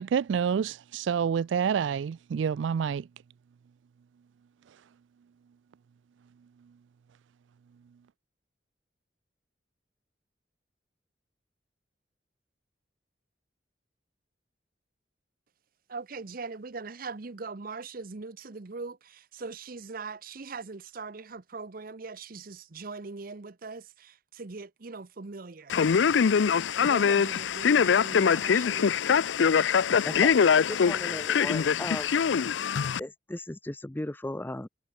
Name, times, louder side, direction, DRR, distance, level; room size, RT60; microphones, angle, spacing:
voice 1, 0.0-3.1, right 7 dB, 80° right, 0.3 m, -28 dB
voice 2, 15.9-25.8 26.7-28.9, right 4 dB, 50° right, 0.8 m, -41 dB
Male speech man speaking, 25.7-33.0, left 6 dB, 80° left, 0.5 m, -23 dB
voice 3, 30.7-32.1 33.0-34.7, left 1 dB, 10° left, 0.5 m, -36 dB
head